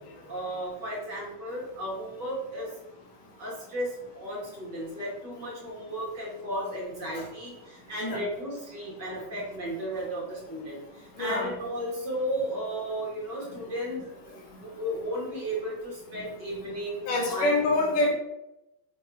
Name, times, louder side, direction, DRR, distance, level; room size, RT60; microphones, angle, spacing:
voice 1, 0.3-2.7 3.4-17.7, equal, 35° right, -5 dB, 2.4 m, -34 dB
voice 2, 11.2-11.5 17.1-18.1, left 2 dB, 65° left, -1 dB, 2.9 m, -25 dB
6.3 x 4.1 x 5.6 m, 0.87 s
omnidirectional pair, 4.3 m